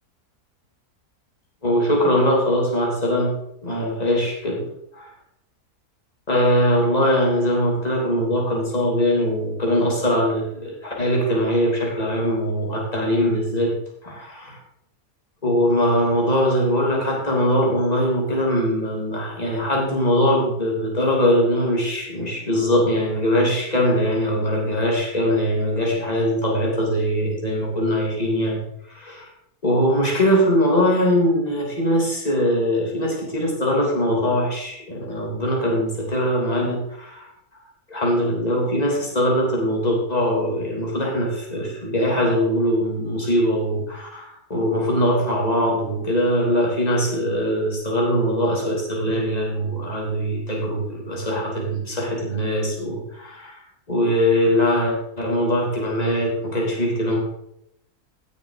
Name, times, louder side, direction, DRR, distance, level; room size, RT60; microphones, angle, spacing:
voice 1, 1.6-3.3 3.6-4.7 4.9-5.1 6.3-13.7 14.0-14.6 15.4-28.6 28.9-29.3 29.6-37.6 37.9-53.6 53.9-57.2, equal, 25° left, -2 dB, 3.1 m, -21 dB
16.5 x 6.7 x 5.0 m, 0.78 s
omnidirectional pair, 1.7 m